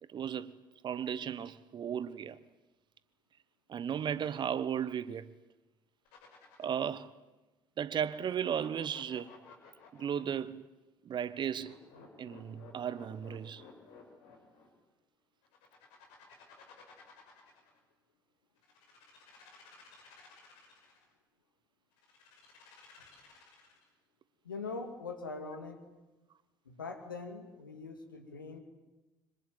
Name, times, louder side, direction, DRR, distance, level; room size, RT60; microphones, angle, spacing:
voice 1, 0.1-0.5 0.8-2.4 3.7-5.3 6.6-7.1 7.8-9.3 9.9-10.6 11.0-11.8 12.2-13.6, right 8 dB, 45° right, 1.2 m, -35 dB
sound 1, 6.0-6.9 7.9-10.4 11.3-14.7 15.4-17.8 18.6-21.0 22.0-23.9, left 5 dB, 65° left, 5.7 m, -56 dB
voice 2, 24.4-25.8 26.7-28.6, left 4 dB, 85° left, 2.6 m, -42 dB
25.5 x 23.0 x 9.4 m
figure-of-eight pair, 50°, 11 cm